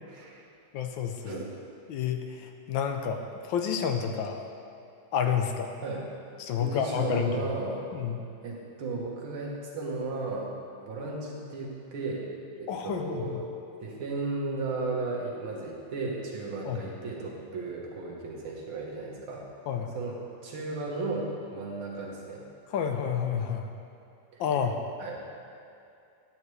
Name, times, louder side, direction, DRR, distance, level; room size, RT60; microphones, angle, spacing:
voice 1, 0.1-0.5 1.2-1.6 5.8-6.1 6.6-7.9 8.4-10.5 10.8-12.3 12.6-13.5 13.8-19.5 19.9-22.4 24.3-24.4 25.0-25.2, right 3 dB, 85° right, -2 dB, 2.1 m, -35 dB
voice 2, 0.7-1.5 1.9-3.2 3.5-4.4 5.1-5.7 6.4-7.4 7.9-8.2 12.7-13.4 16.7-16.8 19.7-19.9 22.7-23.7 24.4-24.8, left 7 dB, 75° left, 5 dB, 1.3 m, -29 dB
10.5 x 8.6 x 3.2 m, 2.6 s
omnidirectional pair, 2.2 m